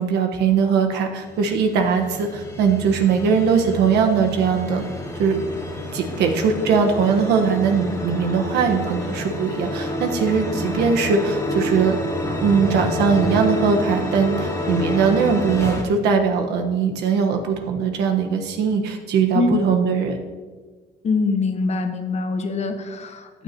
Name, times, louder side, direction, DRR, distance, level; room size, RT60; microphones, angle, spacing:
voice 1, 0.0-4.8 5.2-5.4 5.9-12.0 12.3-20.2, right 6 dB, 80° right, 4 dB, 1.3 m, -20 dB
sound 1, 1.2-15.8, left 1 dB, 15° left, 2.2 m, -28 dB
voice 2, 21.0-23.4, left 3 dB, 40° left, 7 dB, 1.1 m, -23 dB
15.5 x 9.3 x 3.0 m, 1.4 s
cardioid pair, 110°, 17 cm